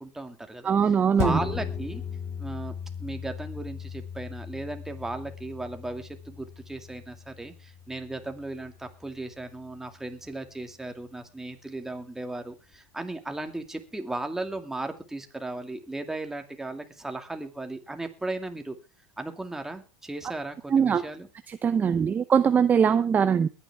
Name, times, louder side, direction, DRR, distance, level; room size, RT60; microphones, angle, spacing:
voice 1, 0.0-2.0 2.4-2.7 3.0-18.8 19.2-21.3 21.8-22.1, right 2 dB, 5° right, 5 dB, 2.3 m, -36 dB
voice 2, 0.6-1.4 20.7-21.0 21.6-23.5, right 7 dB, 25° right, 11 dB, 0.7 m, -21 dB
sound 1, 1.2-10.0 10.4-10.5, left 7 dB, 45° left, 2.7 m, -37 dB
21.5 x 9.5 x 3.6 m, 0.31 s
supercardioid pair, 115°, 7 cm